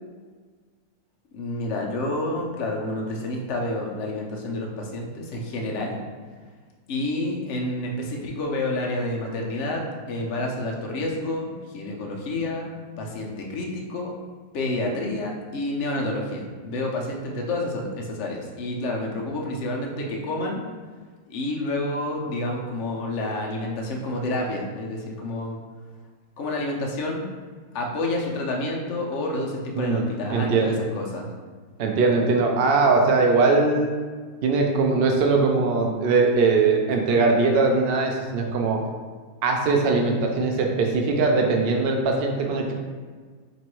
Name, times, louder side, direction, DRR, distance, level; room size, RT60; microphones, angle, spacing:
voice 1, 1.3-6.0 6.9-12.7 13.0-14.1 14.5-20.6 21.3-25.6 26.4-27.2 27.7-31.3, left 1 dB, 60° left, 0 dB, 0.8 m, -29 dB
voice 2, 29.8-30.7 31.8-33.9 34.4-38.8 39.4-42.7, right 3 dB, 75° right, 2 dB, 0.5 m, -21 dB
3.1 x 3.0 x 4.4 m, 1.5 s
omnidirectional pair, 1.7 m